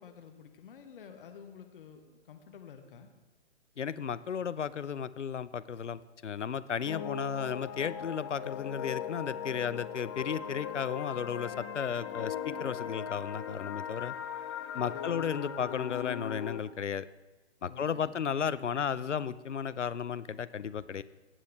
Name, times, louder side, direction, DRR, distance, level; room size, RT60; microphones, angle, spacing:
voice 1, 0.0-3.1 14.9-15.3 17.7-18.3, left 7 dB, 50° left, 6 dB, 1.1 m, -51 dB
voice 2, 3.8-14.1 14.7-17.1 17.6-21.0, left 7 dB, 85° left, 16 dB, 0.5 m, -34 dB
sound 1, 6.9-16.6, left 9 dB, 25° left, 0.5 m, -39 dB
16.0 x 8.1 x 3.2 m, 1.2 s
figure-of-eight pair, 120°, 35 cm